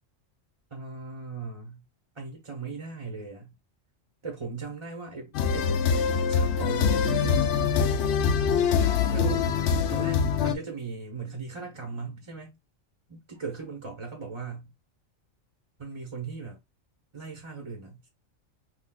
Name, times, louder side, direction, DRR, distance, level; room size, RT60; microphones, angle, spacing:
voice 1, 0.7-1.8 2.1-3.5 4.2-5.8 6.3-7.8 9.1-9.4 9.9-12.6 13.1-14.7 15.8-16.6 17.1-18.1, right 4 dB, 30° right, 0.7 m, -38 dB
sound 1, 5.3-10.5, left 6 dB, 65° left, 0.8 m, -24 dB
5.7 x 2.4 x 2.2 m
omnidirectional pair, 1.3 m